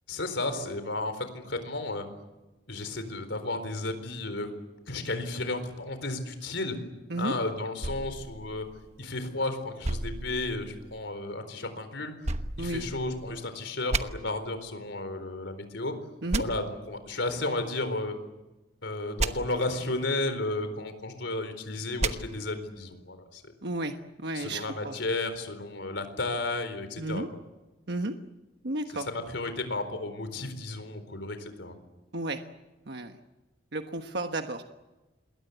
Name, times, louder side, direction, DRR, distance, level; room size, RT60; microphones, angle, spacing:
voice 1, 0.1-2.0 2.7-4.5 4.9-6.7 7.2-8.6 9.0-12.1 12.6-15.9 16.4-18.1 18.8-23.4 24.3-27.3 28.9-31.7, left 2 dB, 70° left, 9 dB, 4.2 m, -33 dB
sound 1, 7.8-9.2 9.8-11.1 12.2-13.4 13.9-14.0 16.3-16.4 19.2-19.3 22.0-22.1, right 2 dB, 35° right, 1.1 m, -32 dB
voice 2, 23.6-24.0 24.2-24.9 27.0-27.3 27.9-28.1 28.6-29.1 32.1-32.4 32.9-33.2 33.7-34.6, right 2 dB, 60° right, 6 dB, 1.3 m, -32 dB
28.0 x 22.0 x 8.1 m, 1.1 s
head